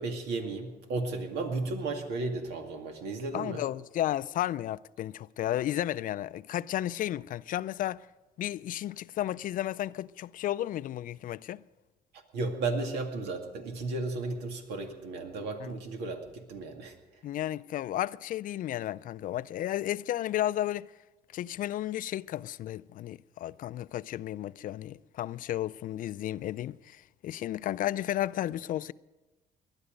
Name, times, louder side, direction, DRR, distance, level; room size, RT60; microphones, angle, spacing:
voice 1, 0.0-3.6 12.1-17.0, right 3 dB, 80° right, 2.2 m, -34 dB
voice 2, 3.3-8.1 8.4-11.6 15.6-15.7 17.2-20.9 21.3-28.9, left 13 dB, 55° left, 0.4 m, -33 dB
19.5 x 11.5 x 5.1 m
cardioid pair, 110°, 17 cm